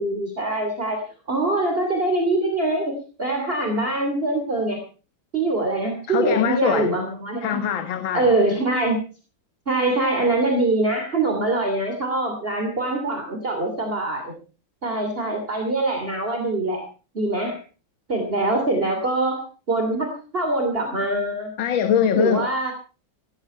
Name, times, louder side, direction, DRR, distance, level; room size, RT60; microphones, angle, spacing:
voice 1, 0.0-4.8 5.3-7.6 8.1-9.0 9.7-14.3 14.8-16.9 17.1-17.6 18.1-19.4 19.7-21.5 22.1-22.7, right 2 dB, 30° right, 3.2 m, -23 dB
voice 2, 6.1-7.0 7.4-8.3 21.6-22.7, left 8 dB, 80° left, 2.1 m, -22 dB
17.5 x 15.0 x 4.4 m
omnidirectional pair, 2.1 m